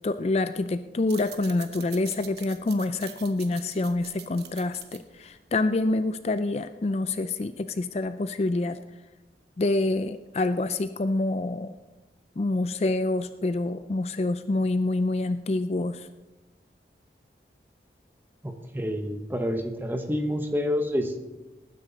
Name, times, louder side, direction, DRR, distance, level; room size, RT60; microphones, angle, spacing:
voice 1, 0.0-8.8 9.6-11.8 12.4-16.1, left 2 dB, 35° left, 11 dB, 0.4 m, -27 dB
sound 1, 1.0-6.1, right 11 dB, 70° right, 1.0 m, -46 dB
voice 2, 18.4-21.2, equal, 10° right, 6 dB, 1.0 m, -28 dB
18.5 x 9.8 x 4.1 m, 1.1 s
head